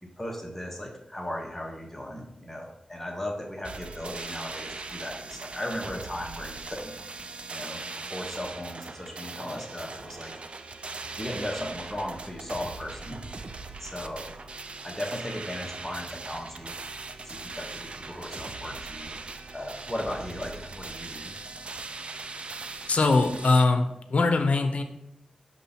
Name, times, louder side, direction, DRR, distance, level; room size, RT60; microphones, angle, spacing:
voice 1, 0.0-6.9 7.5-7.8 8.1-10.3 11.2-13.3 13.8-14.4 14.8-16.8 17.2-19.2 19.5-21.3, left 1 dB, 10° left, 0 dB, 1.1 m, -36 dB
sound 1, 3.6-23.6, right 3 dB, 50° right, 0.4 m, -40 dB
voice 2, 22.9-24.8, left 3 dB, 60° left, 6 dB, 0.7 m, -22 dB
6.3 x 2.8 x 5.6 m, 0.83 s
wide cardioid pair, 70°, 2 cm